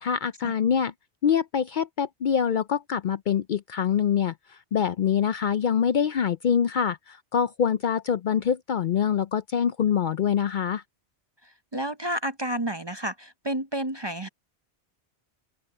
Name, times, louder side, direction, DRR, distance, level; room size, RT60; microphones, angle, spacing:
voice 1, 0.0-0.9 1.2-4.3 4.7-10.8, left 8 dB, 60° left, 0.6 m, -25 dB
voice 2, 11.4-14.3, right 1 dB, 30° right, 0.5 m, -31 dB
open air
omnidirectional pair, 1.1 m